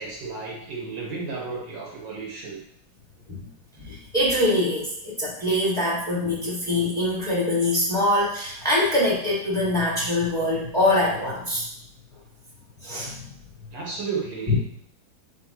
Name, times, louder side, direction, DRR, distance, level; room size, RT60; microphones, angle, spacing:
voice 1, 0.0-2.6 13.7-14.6, right 4 dB, 65° right, -3 dB, 1.9 m, -33 dB
voice 2, 3.8-11.7 12.8-13.3 14.5-14.6, left 1 dB, ahead, -6 dB, 1.9 m, -24 dB
9.5 x 3.3 x 3.0 m, 0.69 s
omnidirectional pair, 2.2 m